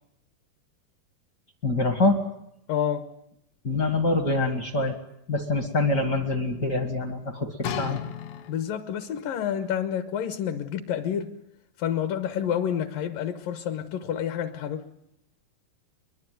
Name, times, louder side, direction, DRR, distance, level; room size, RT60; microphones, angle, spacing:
voice 1, 1.6-2.2 3.6-4.9 5.3-8.0, left 2 dB, 45° left, 1.2 m, -25 dB
voice 2, 2.7-3.0 8.5-11.3 11.8-14.8, left 9 dB, 65° left, 2.5 m, -29 dB
sound 1, 7.6-8.9 9.7-9.8, left 8 dB, 85° left, 3.6 m, -34 dB
23.0 x 22.5 x 9.3 m
omnidirectional pair, 4.8 m